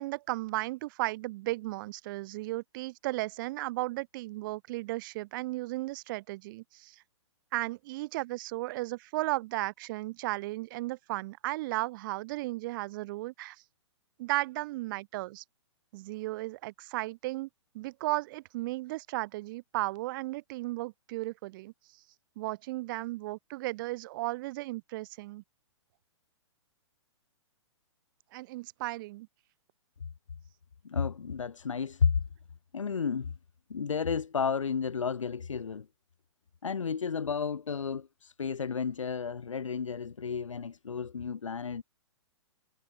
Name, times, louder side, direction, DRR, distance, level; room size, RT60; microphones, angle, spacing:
voice 1, 0.0-7.0 7.5-13.6 14.2-15.4 15.9-17.5 17.7-21.7 22.4-25.4 28.3-29.3, right 19 dB, 40° right, 1.0 m, -35 dB
voice 2, 30.8-32.1 32.7-33.3 33.7-35.9 36.6-41.8, left 6 dB, 85° left, 2.0 m, -32 dB
hypercardioid pair, 130°, 16 cm